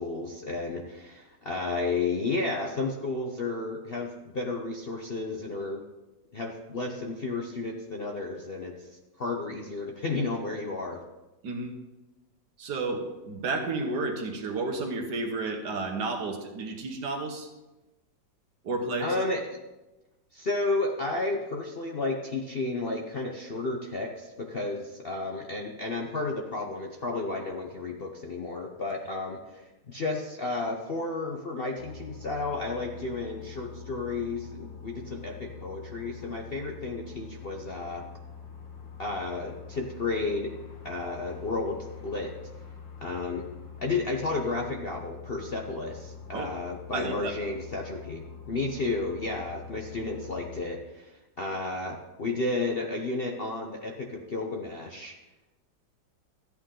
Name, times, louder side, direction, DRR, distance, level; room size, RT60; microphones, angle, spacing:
voice 1, 0.0-5.8 6.3-8.7 9.2-11.0 19.0-19.4 20.3-38.0 39.0-40.5 40.8-42.3 43.0-43.5 43.8-55.1, left 3 dB, 50° left, 1 dB, 0.7 m, -32 dB
voice 2, 12.6-17.5 18.6-19.2 46.3-46.5 46.9-47.3, right 3 dB, 65° right, 3 dB, 1.8 m, -31 dB
sound 1, 31.8-50.6, left 6 dB, 85° left, 2.3 m, -45 dB
13.0 x 8.9 x 3.8 m, 1.1 s
omnidirectional pair, 2.0 m